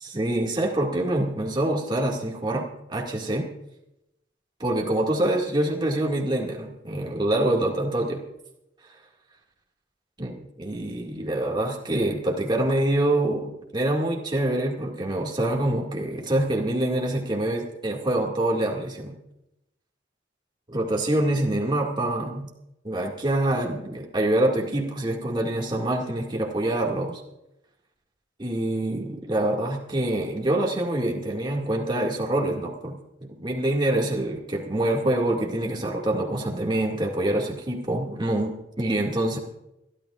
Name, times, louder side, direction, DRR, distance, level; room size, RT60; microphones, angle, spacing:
voice 1, 0.0-3.5 4.6-8.2 10.2-19.1 20.7-22.5 22.8-27.2 28.4-33.0 33.3-39.4, right 1 dB, 25° right, 0 dB, 2.1 m, -25 dB
27.5 x 12.0 x 2.5 m, 0.87 s
head